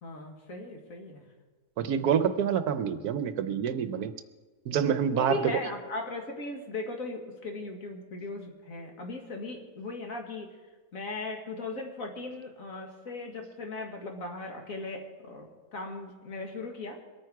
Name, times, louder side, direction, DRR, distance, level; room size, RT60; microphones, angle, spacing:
voice 1, 0.0-1.2 4.7-10.5 10.9-17.0, left 2 dB, 55° left, 2 dB, 2.1 m, -38 dB
voice 2, 1.8-4.1 4.7-5.4, right 8 dB, 70° right, 11 dB, 1.2 m, -27 dB
22.5 x 9.2 x 4.7 m, 1.3 s
omnidirectional pair, 1.7 m